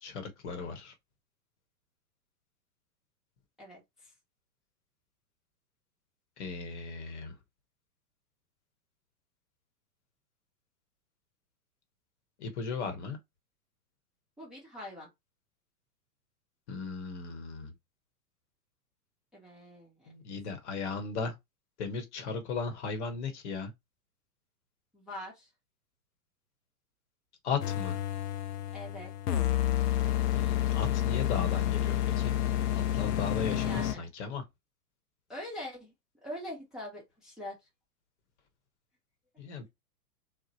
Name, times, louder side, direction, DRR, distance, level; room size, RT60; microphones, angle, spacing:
voice 1, 0.0-0.9 6.4-7.3 12.4-13.2 16.7-17.7 20.1-21.3 21.8-23.7 27.4-28.0 30.4-32.4 32.9-34.4 39.4-39.7, left 4 dB, 45° left, 0.9 m, -36 dB
voice 2, 3.6-4.1 14.4-15.1 19.3-20.1 24.9-25.5 28.7-29.5 33.6-34.0 35.3-35.9 36.2-37.5, left 1 dB, ahead, 0.7 m, -43 dB
sound 1, 27.6-33.9, left 12 dB, 80° left, 0.6 m, -29 dB
2.8 x 2.0 x 2.7 m
figure-of-eight pair, 110°, 47 cm